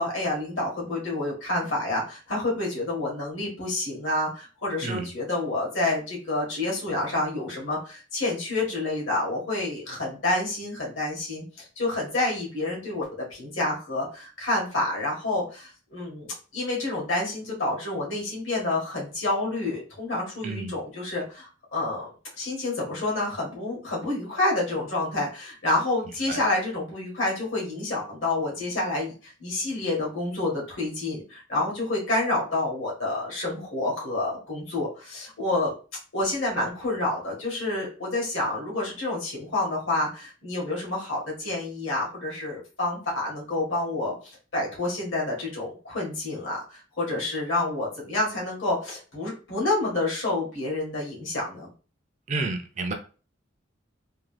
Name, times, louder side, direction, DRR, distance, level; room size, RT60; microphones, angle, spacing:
voice 1, 0.0-22.1 22.4-35.7 36.1-44.2 44.5-51.7, left 2 dB, 70° left, -3 dB, 1.8 m, -28 dB
voice 2, 20.4-20.7 26.3-26.4 52.3-52.9, right 3 dB, 35° right, 5 dB, 0.5 m, -30 dB
3.6 x 2.8 x 3.3 m, 0.37 s
head